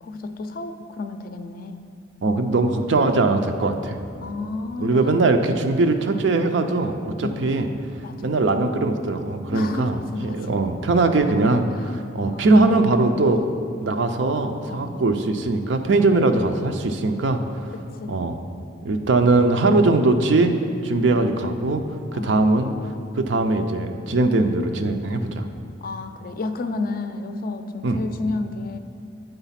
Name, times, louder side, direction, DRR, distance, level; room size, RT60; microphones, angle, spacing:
voice 1, 0.0-1.8 4.2-5.2 7.2-7.4 8.0-8.3 9.5-10.6 11.7-11.9 12.3-12.6 14.7-15.0 17.7-18.3 21.0-21.2 22.1-22.6 25.8-28.8, left 3 dB, 50° left, 8 dB, 0.4 m, -32 dB
voice 2, 2.2-4.0 4.8-7.7 8.2-10.0 10.2-13.5 13.8-17.7 18.1-18.4 18.8-20.5 20.8-21.9 22.1-22.7 23.2-25.5 27.8-28.0, right 2 dB, 85° right, 6 dB, 0.5 m, -20 dB
8.0 x 4.0 x 5.7 m, 2.6 s
head